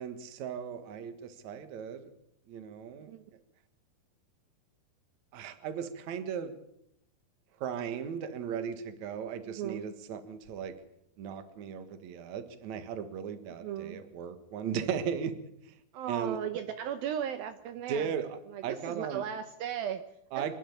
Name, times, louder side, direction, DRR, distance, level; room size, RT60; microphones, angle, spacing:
voice 1, 0.0-2.1 2.5-3.1 5.3-6.5 7.6-10.8 11.2-15.4 15.6-15.8 16.1-16.4 17.9-19.2 20.3-20.6, right 7 dB, 55° right, 10 dB, 2.6 m, -37 dB
voice 2, 9.4-9.9 13.6-14.0 15.9-18.1 18.5-20.6, right 9 dB, 75° right, 9 dB, 2.6 m, -37 dB
27.0 x 11.5 x 8.7 m, 0.77 s
omnidirectional pair, 4.5 m